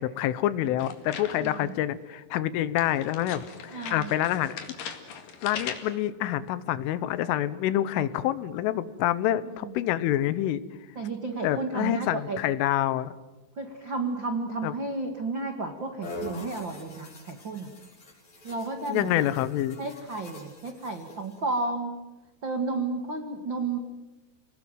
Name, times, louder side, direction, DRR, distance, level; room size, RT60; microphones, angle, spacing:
voice 1, 0.0-3.4 3.7-4.6 5.4-10.6 11.4-13.2 14.6-14.7 18.9-19.8, left 13 dB, 85° left, 15 dB, 3.5 m, -27 dB
sound 1, 0.8-1.8 2.8-6.1, left 7 dB, 55° left, 3.2 m, -40 dB
voice 2, 1.3-1.7 3.7-4.1 7.9-8.0 9.6-9.7 10.9-12.4 13.6-17.7 18.4-19.2 19.8-22.0 22.4-23.8, right 3 dB, 70° right, 5 dB, 1.1 m, -32 dB
sound 2, 16.0-21.4, left 1 dB, 35° left, 8.1 m, -44 dB
30.0 x 20.0 x 9.2 m, 1.1 s
omnidirectional pair, 5.6 m